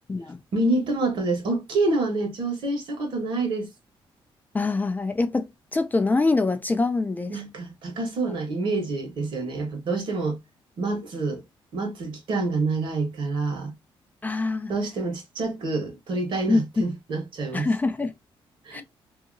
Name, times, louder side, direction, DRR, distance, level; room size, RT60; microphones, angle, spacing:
voice 1, 0.5-3.7 7.3-10.4 10.8-11.4 11.7-13.7 14.7-17.7 18.6-18.8, right 3 dB, 65° right, 1.3 m, -27 dB
voice 2, 4.5-7.4 14.2-14.7 16.5-16.6 17.5-18.1 18.7-18.8, left 3 dB, 20° left, 0.3 m, -24 dB
2.8 x 2.6 x 2.6 m
cardioid pair, 120°, 9 cm